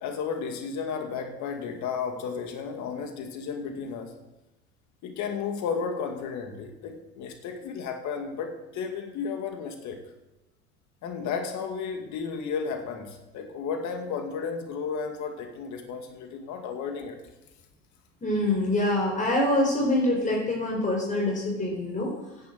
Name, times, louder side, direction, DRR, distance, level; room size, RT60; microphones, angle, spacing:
voice 1, 0.0-4.1 5.0-10.0 11.0-17.2, left 6 dB, 55° left, 5 dB, 2.2 m, -33 dB
voice 2, 18.2-22.1, left 1 dB, 20° left, 0 dB, 4.3 m, -25 dB
10.5 x 10.0 x 7.8 m, 0.98 s
hypercardioid pair, 90°, 35 cm